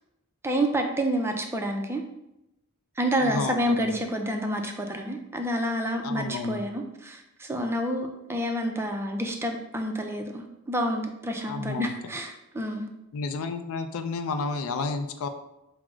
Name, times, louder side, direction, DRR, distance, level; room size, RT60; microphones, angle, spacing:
voice 1, 0.4-2.0 3.0-12.9, equal, 10° right, 4 dB, 0.3 m, -28 dB
voice 2, 3.2-3.9 6.0-6.7 11.5-11.9 13.1-15.3, left 4 dB, 65° left, 8 dB, 0.4 m, -31 dB
4.6 x 2.0 x 3.7 m, 0.88 s
head